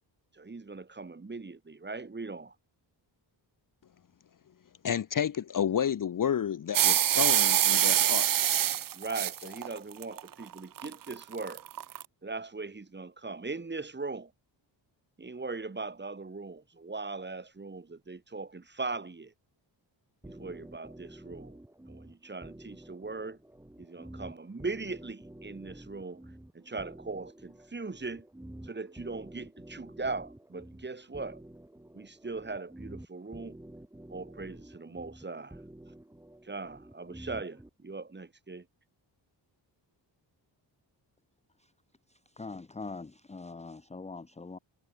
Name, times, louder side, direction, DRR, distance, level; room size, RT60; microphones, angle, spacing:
voice 1, 0.3-2.5 8.9-11.6 12.2-14.3 15.2-19.3 20.2-21.6 21.9-23.4 23.8-26.2 26.5-28.2 28.6-31.4 31.9-33.6 34.1-35.6 36.4-38.7, right 3 dB, 25° right, 3.0 m, -39 dB
voice 2, 4.8-8.3, left 8 dB, 45° left, 0.8 m, -30 dB
sound 1, 6.7-12.0, right 11 dB, 50° right, 0.6 m, -25 dB
sound 2, 20.2-37.7, right 1 dB, 5° right, 2.2 m, -49 dB
voice 3, 42.1-44.6, left 3 dB, 15° left, 0.9 m, -43 dB
wide cardioid pair, 125°, 45 cm